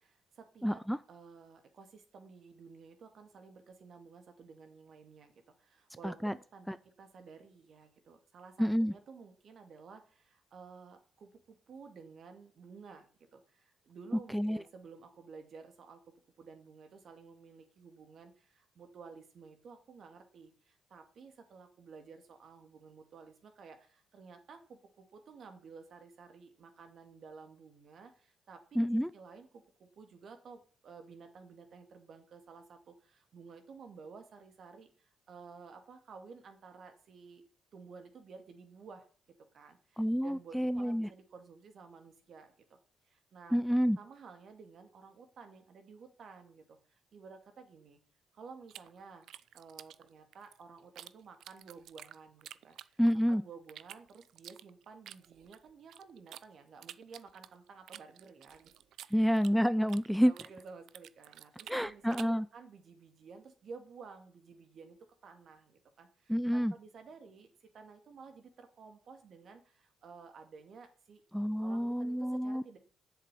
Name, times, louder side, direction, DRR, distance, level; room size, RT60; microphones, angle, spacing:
voice 1, 0.0-0.8 1.1-5.3 5.6-6.7 7.0-37.4 37.7-39.1 39.5-42.8 43.0-43.6 44.0-48.0 48.3-49.3 49.5-53.0 53.3-58.7 59.0-59.3 60.2-65.0 65.2-71.2 71.6-72.8, right 5 dB, 60° right, 6 dB, 2.5 m, -53 dB
voice 2, 0.6-1.0 6.0-6.3 6.7-6.8 8.6-8.9 14.3-14.6 28.8-29.1 40.0-41.1 43.5-44.0 53.0-53.4 59.1-60.3 61.7-62.5 66.3-66.7 71.3-72.6, equal, ahead, 15 dB, 0.4 m, -29 dB
sound 1, 48.7-51.1 51.4-53.3 53.7-56.4 56.8-60.1 60.3-62.4, right 11 dB, 75° right, 0.5 m, -51 dB
7.6 x 7.3 x 8.3 m, 0.41 s
cardioid pair, 90°, 0 cm